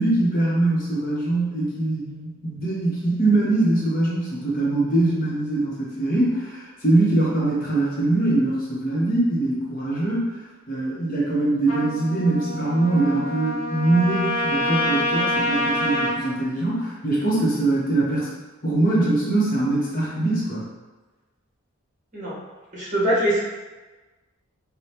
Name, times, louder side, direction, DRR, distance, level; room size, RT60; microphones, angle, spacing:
voice 1, 0.0-10.3 10.7-18.3 18.6-20.6, right 2 dB, 40° left, -6 dB, 0.9 m, -22 dB
Trumpet, 11.7-16.2, left 1 dB, 85° left, 0.8 m, -26 dB
voice 2, 22.7-23.4, equal, 35° right, -8 dB, 1.3 m, -22 dB
5.2 x 2.3 x 2.9 m, 1.2 s
head